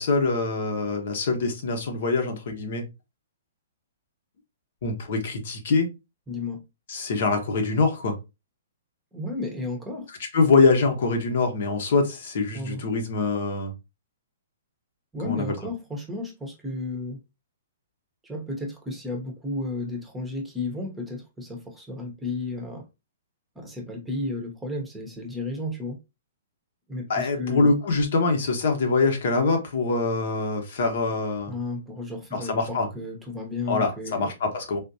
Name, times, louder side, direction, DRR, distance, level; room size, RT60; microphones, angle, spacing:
voice 1, 0.0-2.8 4.8-5.9 6.9-8.1 10.3-13.7 15.2-15.4 27.1-31.5 32.3-32.9 33.7-34.8, left 3 dB, 60° left, 0.9 m, -24 dB
voice 2, 6.3-6.6 9.1-10.1 12.5-12.8 15.1-17.2 18.2-22.9 23.6-26.0 26.9-27.7 31.5-34.3, left 2 dB, 10° right, 0.8 m, -33 dB
3.5 x 2.5 x 2.6 m
hypercardioid pair, 130°, 0 cm